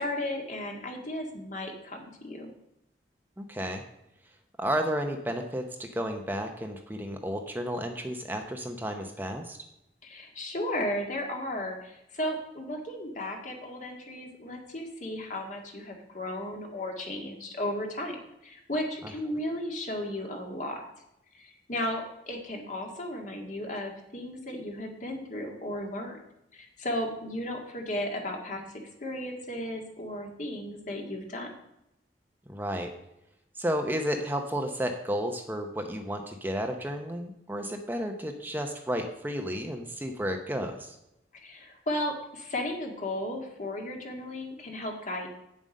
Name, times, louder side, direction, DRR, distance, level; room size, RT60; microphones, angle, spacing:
voice 1, 0.0-2.5 10.0-20.8 21.3-26.2 26.5-31.5 41.4-45.3, left 1 dB, 45° left, 2 dB, 1.9 m, -35 dB
voice 2, 3.4-3.8 4.6-9.6 32.5-32.9 33.6-41.0, equal, 10° right, 4 dB, 0.7 m, -32 dB
8.8 x 7.4 x 5.3 m, 0.85 s
head